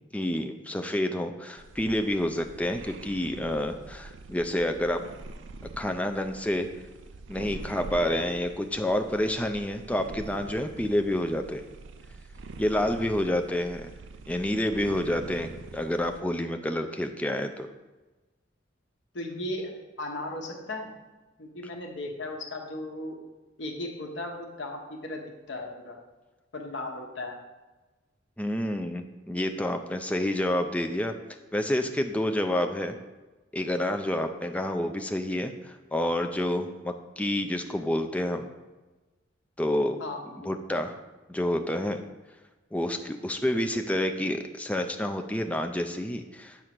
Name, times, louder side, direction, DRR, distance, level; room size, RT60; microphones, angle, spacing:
voice 1, 0.1-5.0 5.8-6.7 7.3-11.6 12.6-13.9 14.3-17.7 28.4-31.1 31.5-33.0 33.5-38.5 39.6-40.0 40.4-41.0 41.3-42.0 42.7-46.6, left 1 dB, 5° left, 6 dB, 0.4 m, -28 dB
sound 1, 1.6-16.2, right 3 dB, 75° right, 0.5 m, -45 dB
voice 2, 19.1-19.7 20.0-20.9 21.4-23.2 23.6-26.0 26.5-27.4 40.0-40.5, left 1 dB, 70° left, 1 dB, 1.2 m, -36 dB
8.1 x 3.7 x 6.0 m, 1.2 s
head